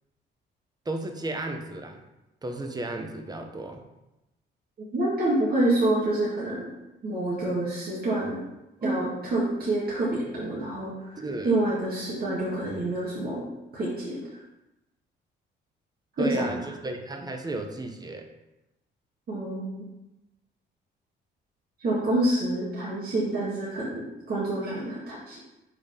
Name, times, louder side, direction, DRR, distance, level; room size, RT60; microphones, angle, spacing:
voice 1, 0.8-2.0 2.4-3.8 8.8-9.0 9.5-9.7 10.4-10.5 11.1-11.6 12.3-12.4 16.2-18.2, right 2 dB, 20° right, 4 dB, 0.9 m, -34 dB
voice 2, 4.9-6.7 7.0-8.4 8.8-14.2 16.2-16.5 19.3-19.8 21.8-25.4, right 1 dB, 50° right, -7 dB, 1.8 m, -27 dB
5.4 x 3.9 x 5.2 m, 0.95 s
cardioid pair, 90°, 20 cm